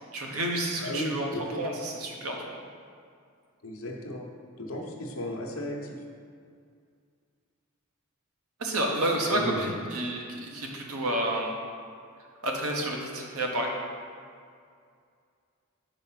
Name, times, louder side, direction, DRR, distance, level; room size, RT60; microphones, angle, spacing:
voice 1, 0.1-1.3 1.6-2.4 8.6-11.6 12.4-13.7, right 1 dB, 75° right, 0 dB, 1.0 m, -30 dB
voice 2, 0.8-1.6 3.6-4.2 4.6-6.0 9.3-9.7, left 1 dB, 65° left, 0 dB, 0.9 m, -35 dB
5.1 x 4.8 x 5.8 m, 2.3 s
head